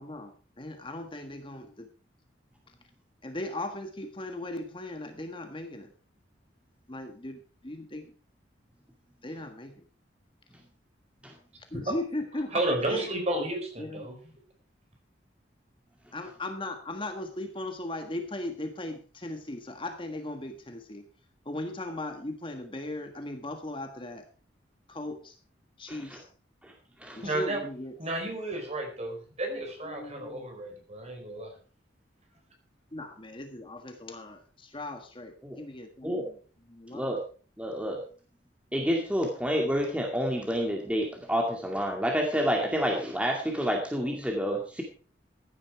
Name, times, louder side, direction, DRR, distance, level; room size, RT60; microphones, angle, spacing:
voice 1, 0.0-1.9 3.2-5.9 6.9-8.1 9.2-9.7 11.7-12.6 12.9-13.1 13.8-14.3 16.1-21.0 21.4-24.2 24.9-25.4 25.8-26.3 27.1-27.9 29.8-30.5 32.9-36.4 36.7-37.1, left 1 dB, 25° left, 6 dB, 1.5 m, -38 dB
voice 2, 12.5-14.2 27.2-27.6 28.0-31.5, right 1 dB, 35° right, 3 dB, 4.4 m, -32 dB
voice 3, 25.9-26.2 26.6-26.7 27.0-27.2 35.4-35.6 36.0-36.3 36.9-37.2 37.6-38.0 38.7-44.8, equal, 5° right, 1 dB, 2.2 m, -29 dB
15.0 x 10.0 x 4.7 m, 0.38 s
head